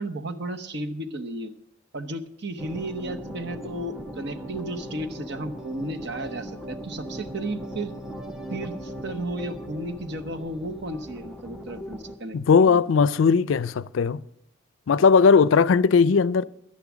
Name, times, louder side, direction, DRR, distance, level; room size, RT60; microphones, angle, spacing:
voice 1, 0.0-1.5 1.9-7.9 8.5-12.8, right 1 dB, 60° right, 1.0 m, -33 dB
sound 1, 2.6-12.2, equal, 5° right, 0.7 m, -39 dB
voice 2, 12.3-14.2 14.9-16.4, left 5 dB, 85° left, 0.4 m, -18 dB
12.0 x 10.5 x 6.1 m
head